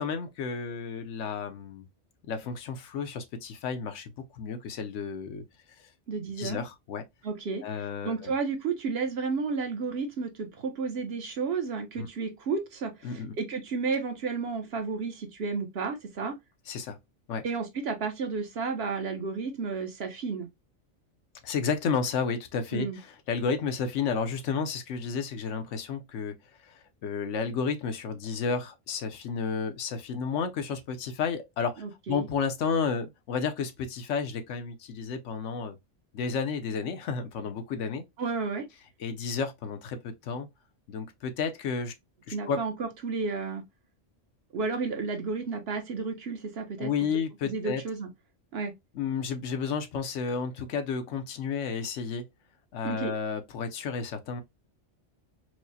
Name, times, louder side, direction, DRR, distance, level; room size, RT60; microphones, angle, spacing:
voice 1, 0.0-1.9 2.3-5.4 5.8-5.9 6.4-7.0 7.6-8.3 12.0-12.1 13.0-13.4 16.7-17.0 17.3-17.5 21.4-26.3 26.6-35.8 36.1-38.0 39.0-40.5 40.9-41.9 42.3-42.6 46.8-47.8 48.9-52.2 52.7-54.4, left 5 dB, 85° left, 1.0 m, -32 dB
voice 2, 6.1-6.6 7.2-7.7 8.0-16.3 17.4-20.5 22.7-23.0 31.8-32.3 38.2-38.6 42.3-43.6 44.5-46.9 47.4-48.1 48.5-48.7 52.8-53.1, right 4 dB, 60° right, 1.0 m, -32 dB
4.6 x 2.1 x 2.6 m
omnidirectional pair, 1.2 m